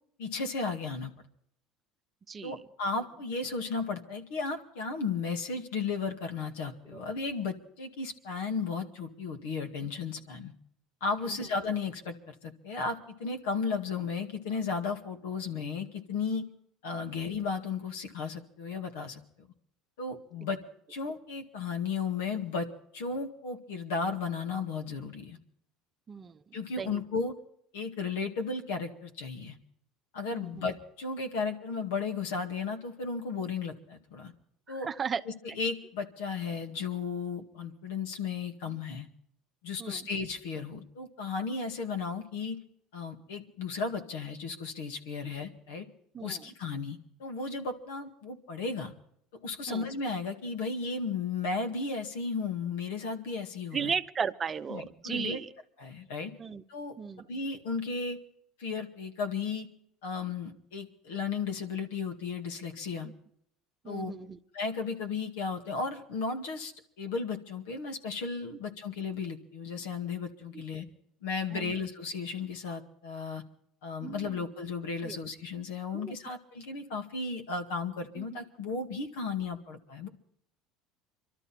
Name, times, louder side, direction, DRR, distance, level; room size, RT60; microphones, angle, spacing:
voice 1, 0.2-1.1 2.4-10.5 11.0-16.4 16.8-19.5 20.0-20.6 20.9-22.7 22.9-25.4 26.5-27.3 27.7-29.6 30.1-34.3 34.7-34.9 35.3-39.1 39.6-42.6 42.9-45.9 46.2-48.9 49.4-53.9 54.7-55.4 55.8-56.3 56.7-57.0 57.3-58.2 58.6-59.7 60.0-63.1 63.9-64.1 64.5-66.7 67.0-70.9 71.2-73.4 73.8-80.1, left 4 dB, 85° left, 5 dB, 2.1 m, -34 dB
voice 2, 2.3-2.6 6.9-7.0 26.1-26.4 26.8-27.0 30.3-30.6 34.7-35.2 35.5-35.6 39.8-40.1 46.1-46.5 49.7-49.9 53.7-55.5 56.4-56.6 57.0-57.3 63.0-63.1 63.8-64.4 70.5-70.6 71.5-71.7 74.0-74.4 75.0-75.2 75.9-76.2 78.2-78.3, right 6 dB, 30° right, 9 dB, 0.8 m, -36 dB
24.0 x 13.0 x 4.3 m, 0.69 s
supercardioid pair, 100°, 0 cm